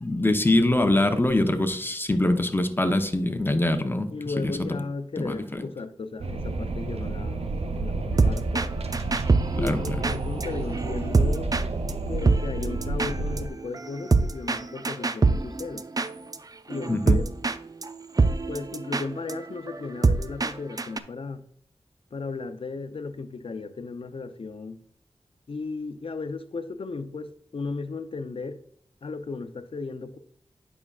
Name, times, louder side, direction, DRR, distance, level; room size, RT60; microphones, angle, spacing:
voice 1, 0.0-4.8 5.2-5.6 9.6-9.8 16.9-17.2, left 1 dB, 20° left, 0.9 m, -24 dB
voice 2, 4.1-7.5 7.7-8.7 9.6-11.5 12.1-15.9 16.7-17.3 18.2-21.4 22.1-24.8 25.5-28.6 29.0-30.2, left 4 dB, 60° left, 0.7 m, -35 dB
Wind, 6.2-13.5, right 2 dB, 80° right, 0.8 m, -30 dB
sound 1, 8.2-8.7 8.9-11.6 11.9-12.0 12.2-16.4 16.7-17.6 17.8-17.9 18.2-20.5 20.8-21.0, right 3 dB, 35° right, 0.5 m, -24 dB
9.5 x 5.9 x 2.5 m
wide cardioid pair, 65°, 10 cm